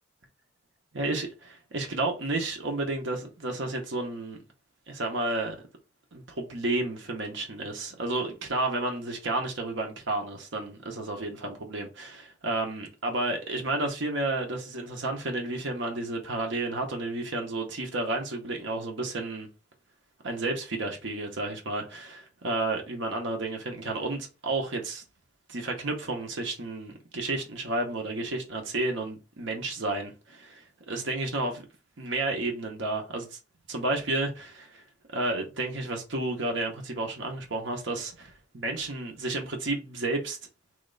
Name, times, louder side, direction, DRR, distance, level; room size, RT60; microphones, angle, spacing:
voice 1, 0.9-4.4 4.9-5.6 6.1-19.5 20.2-25.0 25.5-31.6 32.0-33.4 33.7-34.8 35.1-38.1 38.5-40.4, right 2 dB, 65° right, 0.9 m, -31 dB
3.2 x 2.9 x 3.9 m
head